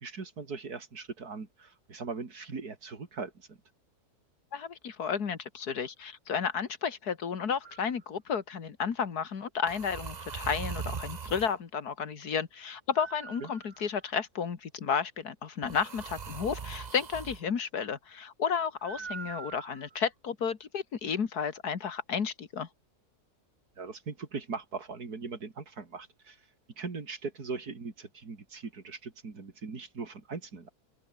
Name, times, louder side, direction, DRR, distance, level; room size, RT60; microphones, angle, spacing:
voice 1, 0.0-3.6 13.4-13.5 23.8-26.4 26.8-30.7, right 4 dB, 75° right, 3.4 m, -40 dB
voice 2, 4.5-22.7, left 6 dB, 80° left, 2.3 m, -32 dB
sound 1, 7.6-7.9 9.7-11.6 13.0-14.1 15.6-17.4 18.8-20.0, right 5 dB, 35° right, 0.9 m, -41 dB
open air
omnidirectional pair, 1.6 m